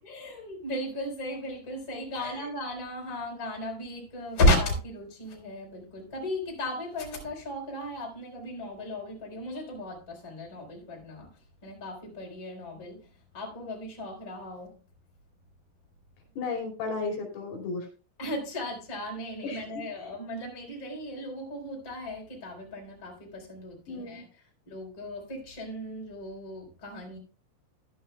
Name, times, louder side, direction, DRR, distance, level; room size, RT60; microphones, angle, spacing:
voice 1, 0.0-11.3 11.6-14.7 18.2-24.2 24.7-27.2, left 1 dB, 25° left, 4.5 m, -34 dB
voice 2, 16.4-17.9 19.4-19.7 23.9-24.2, left 3 dB, 80° left, 5.2 m, -34 dB
15.5 x 11.0 x 2.3 m
omnidirectional pair, 5.9 m